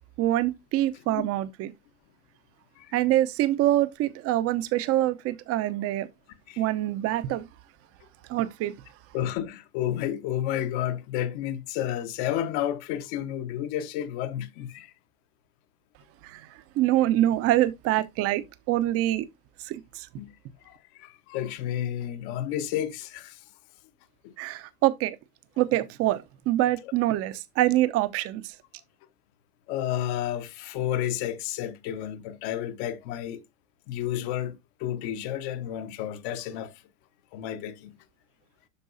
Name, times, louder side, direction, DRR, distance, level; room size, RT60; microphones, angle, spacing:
voice 1, 0.2-1.7 2.9-6.1 6.6-7.4 8.3-8.7 16.2-16.4 16.7-19.3 19.6-20.1 24.4-25.2 25.6-28.5, right 14 dB, 30° right, 0.8 m, -25 dB
voice 2, 9.1-14.9 20.2-20.3 20.6-23.4 24.2-24.3 29.7-33.4 33.9-36.7 37.3-38.0, left 11 dB, 45° left, 1.2 m, -31 dB
12.5 x 4.5 x 2.6 m
hypercardioid pair, 100°, 44 cm